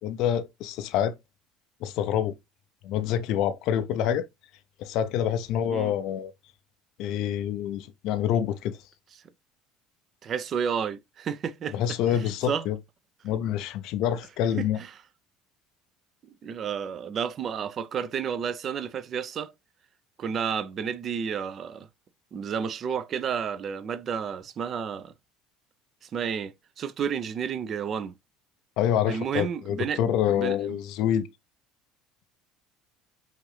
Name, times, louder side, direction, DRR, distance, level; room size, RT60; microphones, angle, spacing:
voice 1, 0.0-1.2 1.8-2.3 2.8-4.3 4.8-6.3 7.0-8.8 11.7-12.8 13.2-14.8 28.8-31.3, left 10 dB, 65° left, 0.4 m, -27 dB
voice 2, 10.2-11.8 12.1-12.7 14.6-14.9 16.2-19.5 20.2-21.9 22.3-25.1 26.0-28.1 29.1-30.1 30.4-30.8, right 7 dB, 45° right, 0.6 m, -31 dB
5.6 x 2.7 x 3.2 m
hypercardioid pair, 70°, 0 cm